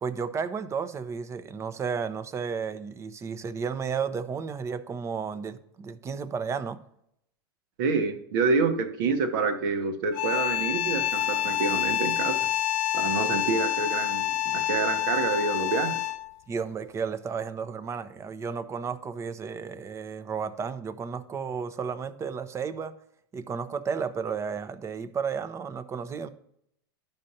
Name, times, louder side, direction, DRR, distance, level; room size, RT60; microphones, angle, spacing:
voice 1, 0.0-6.8 16.5-22.9 23.3-26.3, right 6 dB, 25° right, 11 dB, 0.7 m, -33 dB
voice 2, 7.8-12.4 12.9-16.0, right 4 dB, 65° right, 7 dB, 1.1 m, -27 dB
sound 1, 10.1-16.3, left 13 dB, 60° left, 0.5 m, -27 dB
11.5 x 5.3 x 2.8 m, 0.72 s
hypercardioid pair, 110°, 12 cm